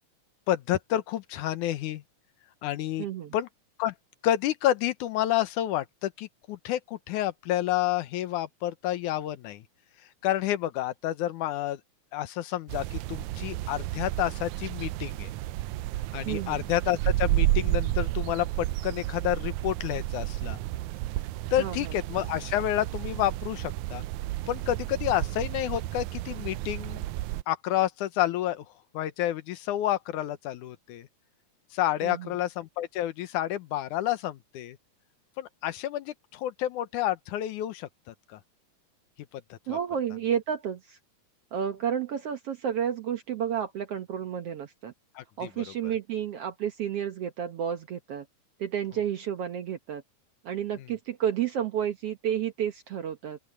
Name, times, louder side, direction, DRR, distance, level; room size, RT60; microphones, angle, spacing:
voice 1, 0.5-2.0 2.6-3.1 3.3-3.5 3.8-3.9 4.2-9.6 10.2-11.8 12.1-15.3 16.1-20.6 21.5-24.0 24.5-27.0 27.5-28.7 28.9-31.1 31.7-34.8 35.4-38.4 39.5-39.8 45.2-45.5, left 13 dB, 80° left, 2.4 m, -29 dB
voice 2, 3.0-3.4 16.2-16.7 21.6-21.9 32.0-32.3 39.7-41.0 41.5-44.9 45.4-48.3 48.6-50.0 50.4-53.4, right 9 dB, 65° right, 1.7 m, -31 dB
sound 1, 12.7-27.4, right 16 dB, 80° right, 1.8 m, -31 dB
open air
omnidirectional pair, 3.6 m